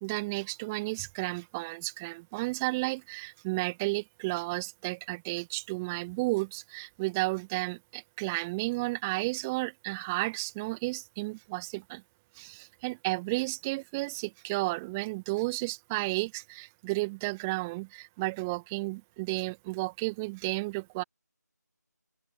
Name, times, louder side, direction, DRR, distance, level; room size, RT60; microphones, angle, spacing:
voice 1, 0.0-12.0 12.4-21.0, right 24 dB, 10° right, 1.8 m, -32 dB
open air
figure-of-eight pair, 165°, 10 cm